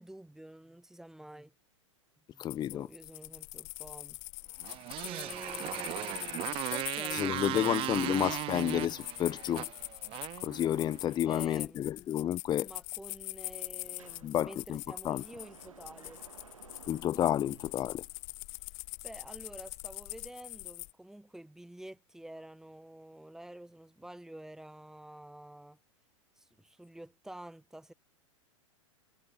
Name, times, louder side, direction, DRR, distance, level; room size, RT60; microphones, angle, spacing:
voice 1, 0.0-1.5 2.3-4.2 5.0-7.7 11.2-11.8 12.6-16.2 19.0-25.8 26.4-27.9, right 1 dB, 5° right, 7.9 m, -49 dB
sound 1, 2.4-20.9, left 40 dB or more, 40° left, 2.6 m, -43 dB
voice 2, 2.4-2.9 7.1-9.7 10.4-12.7 14.2-15.2 16.9-18.0, left 11 dB, 25° left, 1.4 m, -31 dB
Motorcycle, 4.6-11.1, right 17 dB, 30° right, 1.2 m, -37 dB
Sliding door, 13.1-13.2 13.5-18.5, right 6 dB, 75° right, 7.0 m, -57 dB
figure-of-eight pair, 100°, 17 cm